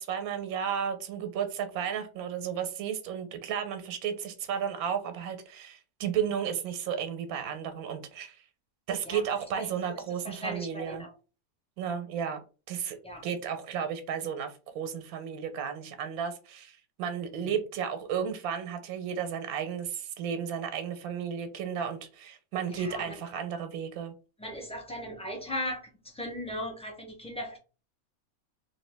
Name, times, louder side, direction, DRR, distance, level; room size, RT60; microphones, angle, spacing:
voice 1, 0.0-8.4 8.9-11.1 11.8-12.4 12.7-24.1, right 8 dB, 90° right, 1.1 m, -33 dB
voice 2, 9.9-11.1 13.0-13.3 17.4-17.5 22.7-23.2 24.4-27.6, equal, 10° left, 0.3 m, -38 dB
3.1 x 2.6 x 3.2 m
omnidirectional pair, 1.5 m